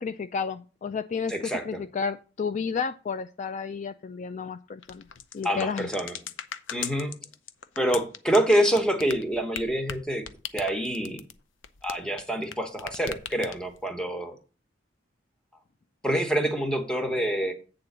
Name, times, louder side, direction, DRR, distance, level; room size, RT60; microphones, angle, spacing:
voice 1, 0.0-5.0 5.3-5.9, left 5 dB, 40° left, 11 dB, 0.3 m, -32 dB
voice 2, 1.3-1.8 5.4-6.1 6.7-7.1 7.8-10.2 10.5-11.2 11.8-14.3 16.0-17.5, right 1 dB, 5° left, 4 dB, 1.3 m, -26 dB
sound 1, 4.8-12.5 12.8-13.8, left 8 dB, 75° left, 0.6 m, -38 dB
8.4 x 3.9 x 6.7 m, 0.35 s
head